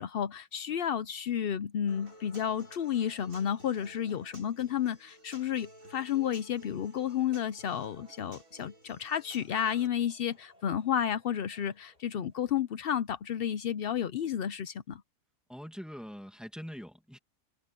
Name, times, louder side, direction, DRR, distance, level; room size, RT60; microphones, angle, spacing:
voice 1, 0.0-15.0, left 9 dB, 70° left, 0.5 m, -32 dB
Human voice / Acoustic guitar, 1.9-9.9, right 1 dB, 55° right, 6.9 m, -54 dB
Laughter / Crowd, 8.8-14.6, equal, 25° right, 6.4 m, -68 dB
voice 2, 15.5-17.2, equal, ahead, 2.1 m, -43 dB
omnidirectional pair, 1.7 m